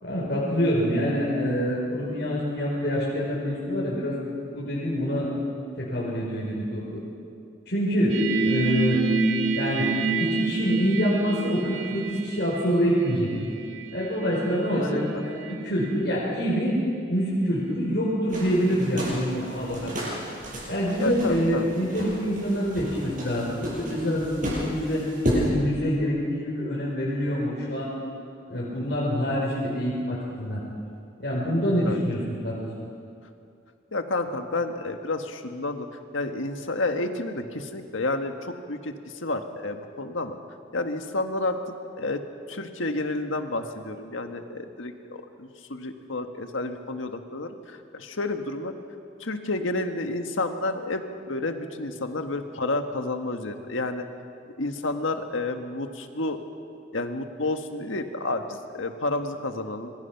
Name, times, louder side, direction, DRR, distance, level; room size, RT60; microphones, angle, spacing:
voice 1, 0.0-4.2 4.5-5.3 5.8-7.0 7.7-8.1 8.4-9.0 9.5-9.9 10.2-13.3 13.9-16.8 17.1-20.0 20.7-25.0 25.3-27.9 28.5-30.6 31.2-32.7, equal, 55° left, -6 dB, 4.5 m, -26 dB
sound 1, 8.1-15.6 15.8-16.1, right 3 dB, 90° right, 1.8 m, -28 dB
sound 2, 18.3-25.5, equal, 40° right, 7.8 m, -33 dB
voice 2, 21.0-21.7 28.7-28.8 31.8-32.0 33.9-35.9 36.1-40.4 40.7-41.6 42.0-42.2 42.5-48.7 49.2-51.0 51.3-54.1 54.6-56.4 56.9-59.9, left 2 dB, 90° left, 6 dB, 1.6 m, -30 dB
26.0 x 22.0 x 6.0 m, 2.5 s
head